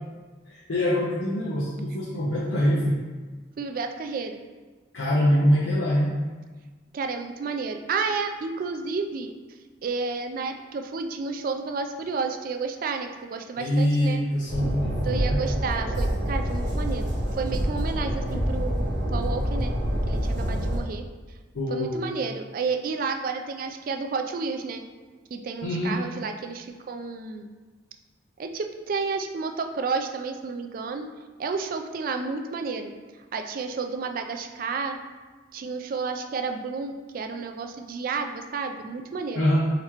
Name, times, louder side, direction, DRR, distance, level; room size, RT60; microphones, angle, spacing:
voice 1, 0.5-3.0 4.9-6.2 13.6-15.5 21.5-22.0 25.6-26.0 39.3-39.6, equal, 90° left, -6 dB, 0.7 m, -24 dB
voice 2, 3.6-4.4 6.9-9.3 9.8-14.2 15.0-19.7 20.1-21.0 21.7-24.8 25.3-27.5 28.4-31.1 31.4-32.9 33.3-35.0 35.5-39.4, right 4 dB, 45° right, 5 dB, 0.3 m, -31 dB
Train, 14.5-20.8, equal, 70° right, 0.8 m, -27 dB
3.9 x 2.9 x 4.3 m, 1.3 s
head